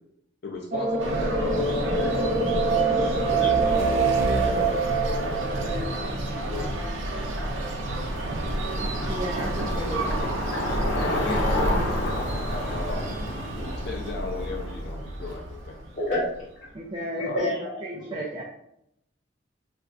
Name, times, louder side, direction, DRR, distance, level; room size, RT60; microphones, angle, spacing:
voice 1, 0.4-2.4 2.9-4.0 4.5-6.8 10.9-13.4 13.7-15.8 17.0-17.4 17.9-18.3, left 3 dB, 60° left, 0 dB, 0.5 m, -37 dB
sound 1, 0.7-6.5, right 4 dB, 45° right, 0.7 m, -25 dB
sound 2, 1.0-16.7, right 1 dB, 85° right, 0.6 m, -31 dB
voice 2, 2.9-3.6 4.5-4.6 13.5-13.6 15.9-16.7 17.2-17.9, left 1 dB, 40° left, -10 dB, 1.0 m, -30 dB
Bicycle, 4.7-15.6, left 1 dB, 85° left, 0.8 m, -31 dB
voice 3, 8.8-10.4 16.7-17.5 17.8-18.4, right 1 dB, 25° right, -2 dB, 0.4 m, -34 dB
4.1 x 2.4 x 2.4 m, 0.77 s
head